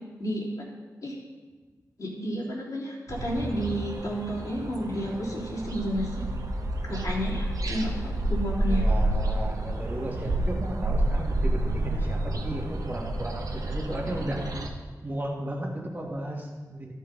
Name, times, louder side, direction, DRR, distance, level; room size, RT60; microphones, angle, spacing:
voice 1, 2.0-6.2 6.9-8.8, equal, 60° left, -6 dB, 3.2 m, -31 dB
sound 1, 3.1-14.7, right 1 dB, 65° right, 1.2 m, -29 dB
voice 2, 8.7-14.5 15.0-16.9, right 1 dB, 30° right, -1 dB, 2.1 m, -34 dB
13.5 x 5.5 x 5.4 m, 1.3 s
wide cardioid pair, 75°, 6 cm